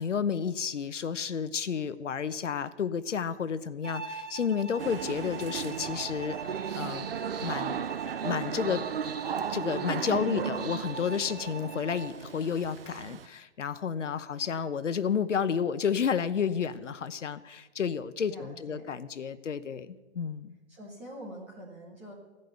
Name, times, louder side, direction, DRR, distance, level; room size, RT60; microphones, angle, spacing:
voice 1, 0.0-6.4 6.7-7.1 7.4-7.8 8.2-8.8 9.5-20.6, left 7 dB, 80° left, 13 dB, 0.9 m, -31 dB
Bowed string instrument, 3.8-12.2, right 5 dB, 85° right, 1.8 m, -42 dB
sound 1, 4.8-13.3, right 8 dB, 55° right, 0.5 m, -36 dB
voice 2, 10.2-10.5 18.3-18.9 20.7-22.1, right 1 dB, 5° right, -4 dB, 0.7 m, -45 dB
14.5 x 5.4 x 7.9 m, 1.2 s
hypercardioid pair, 160°, 36 cm